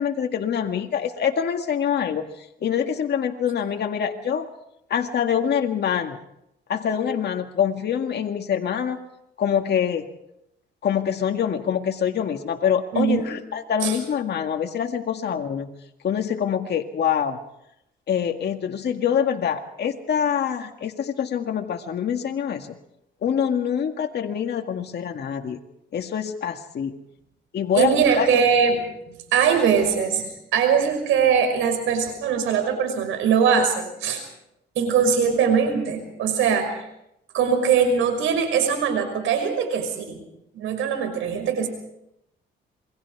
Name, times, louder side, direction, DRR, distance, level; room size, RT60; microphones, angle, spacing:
voice 1, 0.0-4.5 4.9-6.2 6.7-9.0 9.4-10.1 10.8-15.7 16.0-17.4 18.1-22.8 23.2-25.6 25.9-27.0 27.5-28.4, left 8 dB, 60° left, 4 dB, 2.0 m, -25 dB
voice 2, 12.9-13.2 13.8-14.0 27.7-28.8 29.3-34.2 34.8-36.8 37.3-40.2 40.5-41.7, right 6 dB, 90° right, 6 dB, 5.8 m, -21 dB
28.0 x 22.5 x 4.8 m, 0.81 s
cardioid pair, 90°, 20 cm